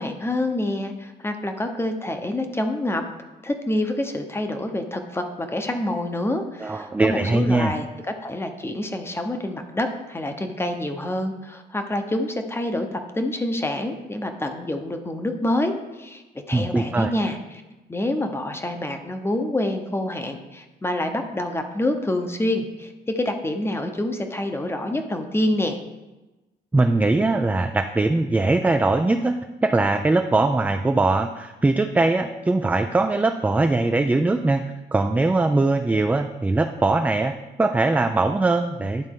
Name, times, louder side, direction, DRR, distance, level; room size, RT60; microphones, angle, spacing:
voice 1, 0.0-3.0 3.4-7.9 8.2-17.6 17.9-25.8, left 1 dB, 15° left, 6 dB, 0.8 m, -27 dB
voice 2, 6.6-7.7 16.5-17.1 26.7-34.6 34.9-39.1, right 2 dB, 10° right, 7 dB, 0.3 m, -21 dB
10.5 x 4.0 x 3.7 m, 1.1 s
cardioid pair, 95°, 18 cm